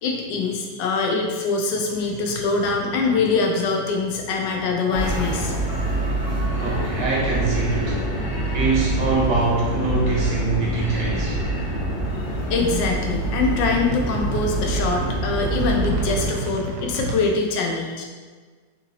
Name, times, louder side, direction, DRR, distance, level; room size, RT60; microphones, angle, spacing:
voice 1, 0.0-5.5 12.1-12.2 12.5-18.0, left 4 dB, 90° left, 1 dB, 1.3 m, -23 dB
Piano, 4.3-8.1 8.4-8.5, right 3 dB, 15° right, 0.3 m, -41 dB
sound 1, 4.9-16.3, right 1 dB, 55° left, 0.8 m, -25 dB
voice 2, 6.5-8.0 8.5-11.4, right 3 dB, 75° right, -4 dB, 1.5 m, -23 dB
sound 2, 11.6-17.3, right 3 dB, 90° right, 1.3 m, -33 dB
3.7 x 2.8 x 2.8 m, 1.5 s
omnidirectional pair, 1.9 m